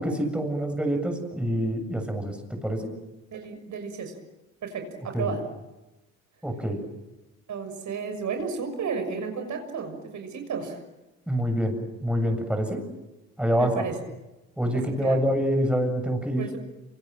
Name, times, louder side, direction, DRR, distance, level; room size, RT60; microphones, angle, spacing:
voice 1, 0.0-2.9 5.1-5.3 6.4-6.8 11.3-11.7 12.0-12.8 13.4-13.7 14.6-16.4, equal, 5° right, 5 dB, 7.4 m, -26 dB
voice 2, 3.3-4.2 4.6-5.4 7.5-10.8 13.6-14.0 14.7-15.2 16.4-16.6, right 5 dB, 45° right, 5 dB, 6.4 m, -33 dB
27.5 x 27.0 x 7.7 m, 1.0 s
hypercardioid pair, 70°, 40 cm